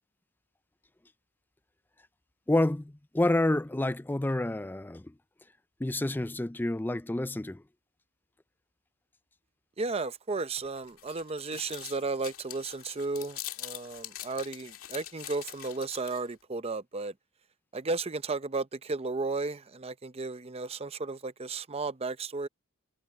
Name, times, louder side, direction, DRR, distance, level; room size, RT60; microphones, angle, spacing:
voice 1, 2.5-5.1 5.8-7.6, left 1 dB, 10° left, 0.4 m, -28 dB
voice 2, 9.8-17.1 17.7-22.5, right 3 dB, 25° right, 0.6 m, -34 dB
sound 1, 10.6-16.3, left 13 dB, 70° left, 2.1 m, -44 dB
head